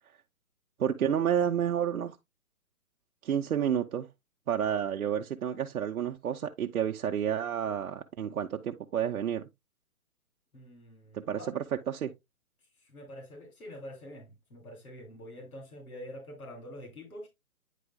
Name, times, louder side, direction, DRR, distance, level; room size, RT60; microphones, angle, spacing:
voice 1, 0.8-2.2 3.2-4.1 4.5-9.4 11.1-12.1, right 9 dB, 75° right, 0.7 m, -30 dB
voice 2, 10.5-11.5 12.9-17.3, equal, 90° left, 3.0 m, -46 dB
9.2 x 4.8 x 2.3 m
hypercardioid pair, 175°, 43 cm